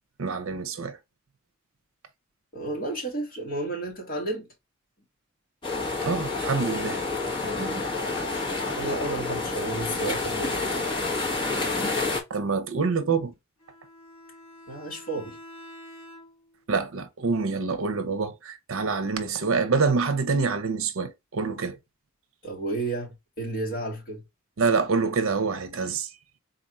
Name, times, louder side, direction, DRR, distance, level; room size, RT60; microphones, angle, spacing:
voice 1, 0.2-1.0 6.0-7.0 7.4-7.9 12.3-13.3 16.7-21.8 24.6-26.1, right 4 dB, 70° right, 0.6 m, -26 dB
voice 2, 2.5-4.5 8.7-10.7 14.7-15.4 22.4-24.2, right 2 dB, 45° left, 1.9 m, -32 dB
sound 1, 5.6-12.2, left 3 dB, 25° left, 1.3 m, -29 dB
Bowed string instrument, 13.6-16.6, left 1 dB, 75° left, 1.9 m, -47 dB
3.9 x 2.6 x 4.1 m
head